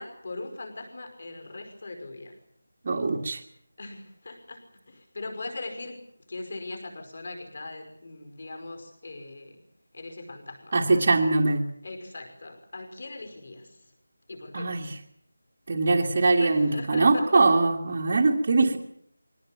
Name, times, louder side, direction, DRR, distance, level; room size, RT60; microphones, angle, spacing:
voice 1, 0.0-2.4 3.8-6.0 6.3-9.6 9.9-10.7 11.8-13.8 14.3-14.8 16.2-17.4, left 2 dB, 35° left, 5 dB, 5.3 m, -40 dB
voice 2, 2.8-3.4 10.7-11.6 14.5-14.9 15.7-18.8, right 3 dB, 25° right, -2 dB, 1.7 m, -22 dB
23.0 x 18.0 x 9.0 m, 0.66 s
figure-of-eight pair, 180°, 0 cm